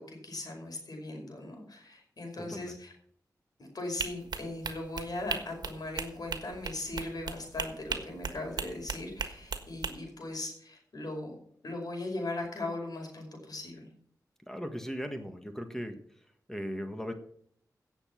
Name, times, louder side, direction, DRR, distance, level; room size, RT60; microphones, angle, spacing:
voice 1, 0.0-2.9 3.6-11.4 11.6-13.9, left 2 dB, 70° left, 2 dB, 5.3 m, -39 dB
voice 2, 2.4-2.7 14.5-16.0 16.5-17.1, equal, 5° left, 6 dB, 1.6 m, -38 dB
sound 1, 4.0-9.9, right 5 dB, 90° right, 1.5 m, -37 dB
16.5 x 7.2 x 5.9 m, 0.63 s
wide cardioid pair, 95°, 7 cm